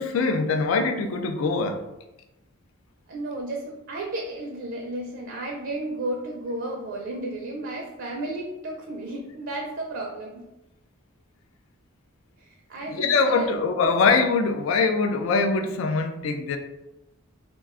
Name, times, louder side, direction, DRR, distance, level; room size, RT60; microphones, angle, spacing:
voice 1, 0.0-1.8 12.9-16.6, left 4 dB, 75° left, 7 dB, 0.3 m, -23 dB
voice 2, 3.1-10.4 12.4-13.5, right 1 dB, 60° right, 0 dB, 0.4 m, -33 dB
2.3 x 2.2 x 3.5 m, 0.96 s
head